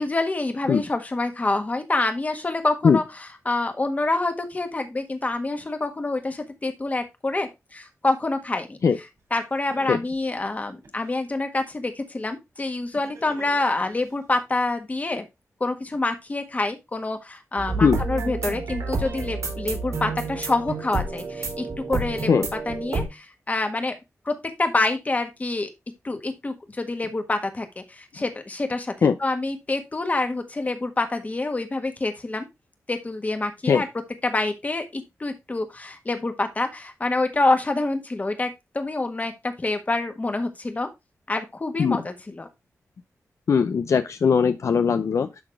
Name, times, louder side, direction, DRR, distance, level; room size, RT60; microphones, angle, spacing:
voice 1, 0.0-15.2 15.6-23.9 24.2-25.7 26.0-32.5 32.9-33.9 34.2-40.9 41.3-42.5, left 2 dB, 30° left, 1.5 m, -27 dB
Laughter, 9.2-9.3 9.7-11.2 12.9-14.1, right 1 dB, 65° right, 3.0 m, -46 dB
sound 1, 17.6-23.1, right 4 dB, 80° right, 3.7 m, -30 dB
voice 2, 43.5-45.4, left 6 dB, 65° left, 0.5 m, -19 dB
11.5 x 3.9 x 3.5 m
wide cardioid pair, 135°, 5 cm